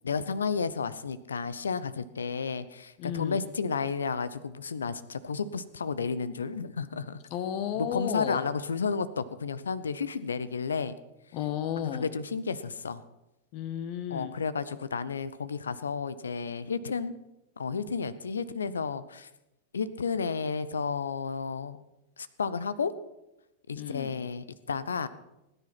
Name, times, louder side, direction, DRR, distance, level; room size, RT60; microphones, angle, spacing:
voice 1, 0.0-7.2 7.9-10.9 11.8-13.0 14.1-17.1 17.6-19.3 19.7-21.8 22.2-22.9 23.7-25.1, left 5 dB, 70° left, 16 dB, 0.7 m, -32 dB
voice 2, 3.0-3.4 7.3-8.4 11.3-12.1 13.5-14.3 23.7-24.2, left 9 dB, 45° left, 10 dB, 1.4 m, -33 dB
18.0 x 10.0 x 5.9 m, 0.93 s
figure-of-eight pair, 90°, 0 cm